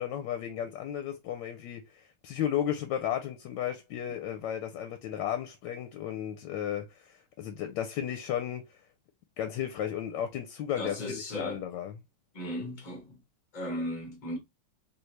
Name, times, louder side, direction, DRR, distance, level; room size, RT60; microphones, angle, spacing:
voice 1, 0.0-8.8 9.4-11.9, left 10 dB, 75° left, 1.2 m, -34 dB
voice 2, 10.8-11.6 12.3-13.2 13.5-14.4, equal, 50° left, 0.5 m, -36 dB
3.5 x 2.6 x 3.1 m
omnidirectional pair, 2.2 m